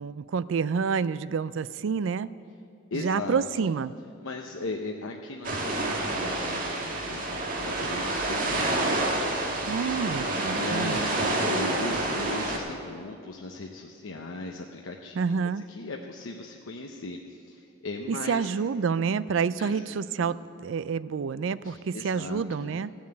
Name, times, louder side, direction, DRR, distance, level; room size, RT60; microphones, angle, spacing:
voice 1, 0.0-2.3 2.9-3.9 9.7-11.0 15.2-15.6 18.1-22.9, right 5 dB, 70° right, 16 dB, 0.4 m, -28 dB
voice 2, 2.9-3.7 4.2-9.0 10.5-15.4 15.7-18.5 19.6-20.3 21.6-22.7, left 2 dB, 80° left, 2 dB, 0.8 m, -38 dB
sound 1, 5.4-12.6, right 2 dB, 40° right, 1.6 m, -28 dB
15.0 x 7.2 x 8.7 m, 2.4 s
head